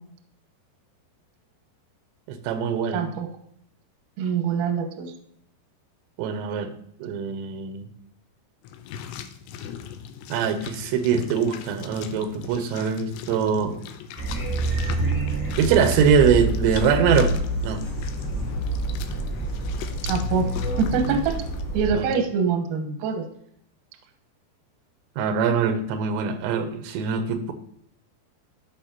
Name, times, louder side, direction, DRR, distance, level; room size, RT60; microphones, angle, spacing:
voice 1, 2.3-3.1 6.2-6.7 7.0-7.9 10.3-13.7 15.6-17.8 21.9-22.1 25.2-27.5, right 7 dB, 90° right, 9 dB, 3.0 m, -23 dB
voice 2, 2.9-3.3 4.2-5.1 20.0-21.3 21.7-23.3, right 6 dB, 75° right, 5 dB, 2.0 m, -25 dB
sound 1, 8.6-21.6, left 8 dB, 90° left, 2.9 m, -39 dB
sound 2, 14.2-21.9, right 1 dB, 20° right, 0.5 m, -27 dB
13.5 x 5.6 x 2.8 m, 0.71 s
omnidirectional pair, 5.1 m